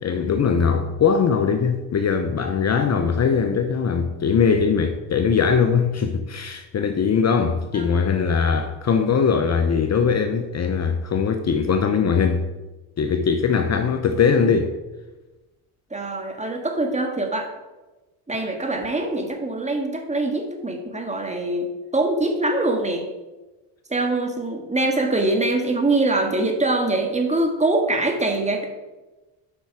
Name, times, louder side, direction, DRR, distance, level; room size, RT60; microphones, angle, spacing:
voice 1, 0.0-12.5 13.0-14.7, left 6 dB, 35° left, 0.8 m, -21 dB
voice 2, 15.9-17.5 18.3-23.1 23.9-28.7, right 2 dB, 15° right, 1.7 m, -23 dB
8.8 x 5.4 x 4.6 m
supercardioid pair, 75°, 45 cm